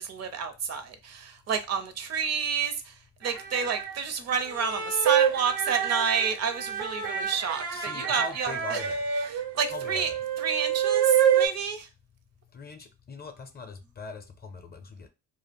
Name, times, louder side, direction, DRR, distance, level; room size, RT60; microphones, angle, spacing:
voice 1, 0.0-2.9 3.2-8.8 9.2-10.1 10.4-11.9, right 6 dB, 55° right, 0.6 m, -30 dB
sound 1, 3.2-3.9 4.5-11.5, right 8 dB, 90° right, 0.8 m, -27 dB
voice 2, 7.7-9.0 9.7-10.2 12.5-15.1, left 4 dB, 30° left, 0.5 m, -41 dB
2.2 x 2.0 x 3.4 m
cardioid pair, 90°, 30 cm